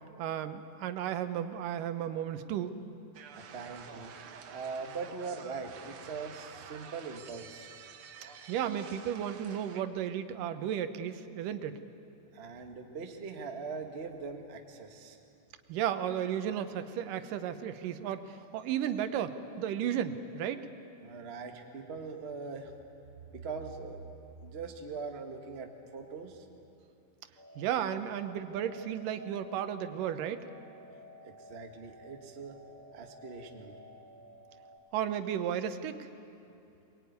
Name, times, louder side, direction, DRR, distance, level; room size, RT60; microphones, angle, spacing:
voice 1, 0.2-2.7 8.5-11.8 15.7-20.7 27.6-30.5 34.9-36.1, right 9 dB, 80° right, 10 dB, 2.6 m, -34 dB
sound 1, 3.1-9.8, right 7 dB, 60° right, 1.4 m, -49 dB
voice 2, 3.3-4.1 4.5-7.7 12.3-15.2 21.0-22.7 23.3-24.0 24.4-26.4 31.3-32.6 32.9-33.8, right 4 dB, 40° right, 4 dB, 0.9 m, -41 dB
sound 2, 27.4-34.8, equal, 15° left, 4.1 m, -54 dB
23.0 x 21.0 x 9.4 m, 2.7 s
omnidirectional pair, 3.8 m